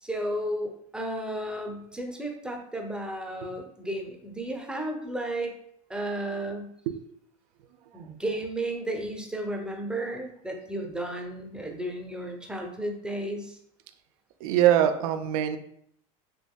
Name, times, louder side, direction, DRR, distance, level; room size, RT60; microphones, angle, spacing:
voice 1, 0.0-5.6 5.9-6.7 7.9-13.6, right 1 dB, 5° right, 2 dB, 0.6 m, -33 dB
voice 2, 14.4-15.6, right 11 dB, 75° right, 9 dB, 0.4 m, -22 dB
3.7 x 2.5 x 2.3 m, 0.70 s
supercardioid pair, 100°, 18 cm